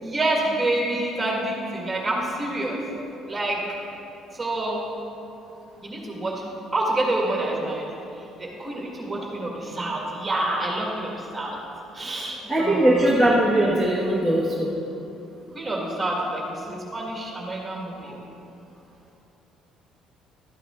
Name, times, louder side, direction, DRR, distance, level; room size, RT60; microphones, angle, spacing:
voice 1, 0.0-2.8 3.3-3.6 4.4-4.8 5.8-6.4 6.7-7.9 8.4-11.6 11.9-13.1 15.5-18.2, right 1 dB, 10° right, -2 dB, 1.9 m, -27 dB
voice 2, 12.5-14.7 18.0-18.2, right 1 dB, 5° left, -6 dB, 1.2 m, -20 dB
12.5 x 8.6 x 3.8 m, 2.8 s
cardioid pair, 150°, 0 cm